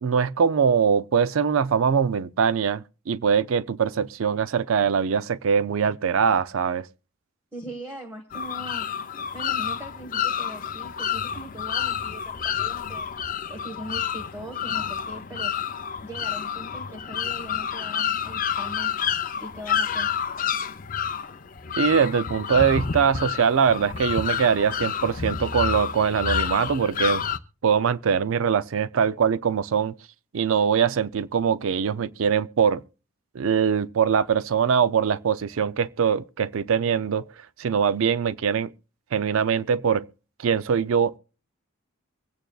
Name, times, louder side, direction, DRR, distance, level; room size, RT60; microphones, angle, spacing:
voice 1, 0.0-6.9 21.8-27.2 27.6-29.9 30.3-32.8 33.3-37.2 37.6-38.7 39.1-40.1 40.4-41.2, right 7 dB, 70° right, 0.4 m, -22 dB
voice 2, 7.5-8.9 9.3-13.1 13.5-15.5 16.0-18.9 19.4-20.1, right 1 dB, 10° right, 1.3 m, -40 dB
sound 1, 8.3-27.4, left 8 dB, 40° left, 0.5 m, -29 dB
24.0 x 9.1 x 2.3 m
head